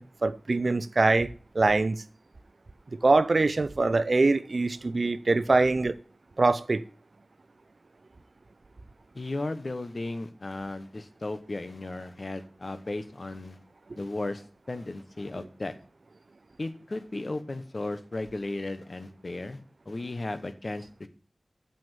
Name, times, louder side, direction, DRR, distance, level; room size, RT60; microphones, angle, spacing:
voice 1, 0.0-2.0 2.9-6.0 6.4-6.8 13.9-14.0, right 3 dB, 70° right, 0.5 m, -24 dB
voice 2, 9.1-13.6 14.0-15.7 16.6-19.6 19.9-21.1, left 2 dB, 60° left, 1.0 m, -35 dB
6.9 x 6.3 x 7.6 m
wide cardioid pair, 50°, 0 cm